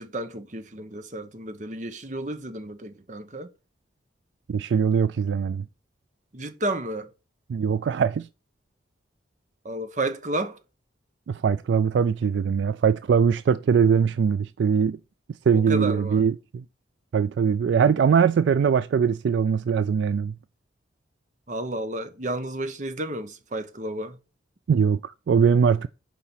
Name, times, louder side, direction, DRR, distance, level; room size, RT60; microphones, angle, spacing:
voice 1, 0.0-3.5 6.3-7.1 9.6-10.6 15.5-16.2 21.5-24.2, right 1 dB, 40° right, 1.0 m, -32 dB
voice 2, 4.5-5.7 7.5-8.3 11.3-15.0 15.5-16.6 17.1-20.4 24.7-25.9, right 6 dB, 70° right, 0.3 m, -21 dB
6.9 x 4.9 x 5.7 m
head